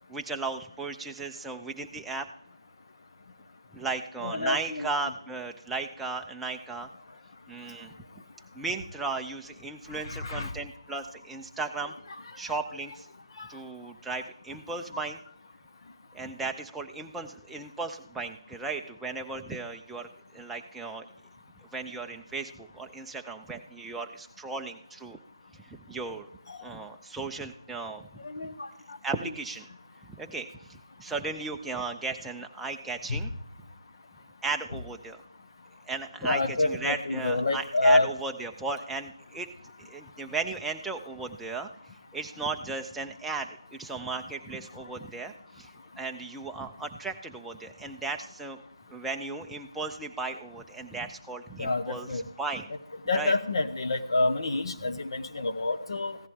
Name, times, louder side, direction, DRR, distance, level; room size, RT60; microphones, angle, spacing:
voice 1, 0.1-2.3 3.7-6.9 7.5-7.9 8.5-11.9 12.4-13.1 13.5-15.2 16.1-21.1 21.7-25.2 25.5-26.3 26.6-28.1 28.4-28.5 29.0-29.7 30.1-33.3 34.4-35.2 35.9-39.5 39.8-45.7 46.0-48.6 48.9-52.7 53.1-53.3, right 3 dB, 5° right, 3 dB, 0.5 m, -36 dB
voice 2, 4.2-4.9 10.0-10.5 13.4-13.5 26.5-26.6 28.2-29.0 33.1-33.2 36.2-38.1 51.6-52.2 53.1-56.2, left 2 dB, 60° left, 9 dB, 1.0 m, -27 dB
15.0 x 11.0 x 3.6 m, 0.72 s
figure-of-eight pair, 160°, 3 cm